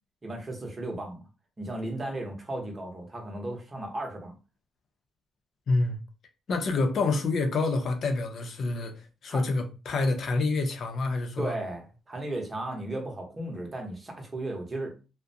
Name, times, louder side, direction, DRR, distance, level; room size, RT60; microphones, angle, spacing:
voice 1, 0.2-1.2 1.6-4.3 9.3-9.4 11.4-14.9, right 1 dB, 30° right, 0.9 m, -35 dB
voice 2, 5.7-6.0 6.5-11.5, left 3 dB, 60° left, 0.6 m, -27 dB
2.4 x 2.1 x 2.6 m
cardioid pair, 90°, 0 cm